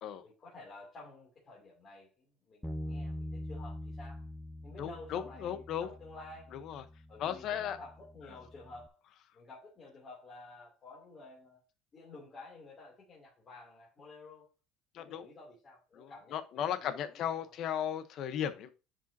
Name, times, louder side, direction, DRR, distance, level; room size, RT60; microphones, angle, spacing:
voice 1, 0.2-4.2 4.6-6.6 7.1-9.0 9.3-11.6 11.9-14.5 15.0-17.5, left 2 dB, 25° left, 2.8 m, -52 dB
Bass guitar, 2.6-8.9, equal, ahead, 0.5 m, -44 dB
voice 2, 4.8-5.9 6.5-6.8 7.2-7.8 14.9-15.3 16.0-18.7, left 9 dB, 45° left, 1.0 m, -36 dB
9.9 x 5.1 x 2.8 m
cardioid pair, 160°, 0 cm